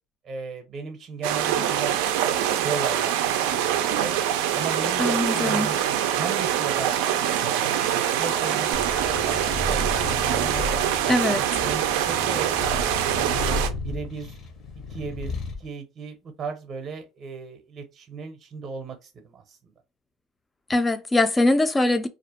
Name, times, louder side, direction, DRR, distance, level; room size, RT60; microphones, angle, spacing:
voice 1, 0.2-2.0 2.2-4.1 4.5-5.8 6.2-6.9 7.2-10.7 11.3-12.5 13.1-14.4 14.9-19.6, right 5 dB, 35° right, 0.7 m, -36 dB
sound 1, 1.2-13.7, right 10 dB, 80° right, 0.3 m, -24 dB
sound 2, 3.4-10.9, left 4 dB, 75° left, 1.0 m, -46 dB
voice 2, 5.0-5.7 11.1-11.4 20.7-22.1, left 2 dB, 15° left, 0.4 m, -22 dB
Purr, 8.7-15.7, left 2 dB, 45° left, 0.7 m, -33 dB
2.4 x 2.1 x 2.8 m
supercardioid pair, 110°, 0 cm